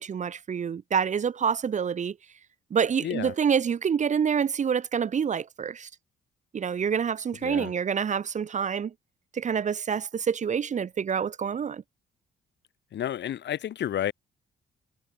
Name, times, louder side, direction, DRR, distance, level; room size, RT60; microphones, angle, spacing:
voice 1, 0.0-2.1 2.7-5.9 6.5-8.9 9.3-11.8, right 7 dB, 40° right, 0.6 m, -27 dB
voice 2, 3.0-3.3 7.4-7.7 12.9-14.1, left 11 dB, 65° left, 1.4 m, -31 dB
cardioid pair, 90°, 20 cm